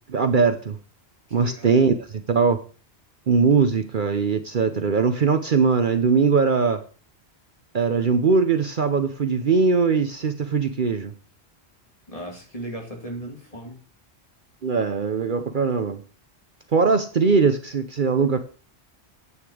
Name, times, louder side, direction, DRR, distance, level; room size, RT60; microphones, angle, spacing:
voice 1, 0.1-0.8 1.3-2.6 3.3-6.8 7.7-11.1 14.6-16.0 16.7-18.4, right 5 dB, 50° right, 9 dB, 0.9 m, -21 dB
voice 2, 1.3-1.7 12.1-13.8, right 1 dB, 30° left, 0 dB, 3.0 m, -36 dB
9.7 x 8.8 x 4.9 m, 0.37 s
omnidirectional pair, 1.1 m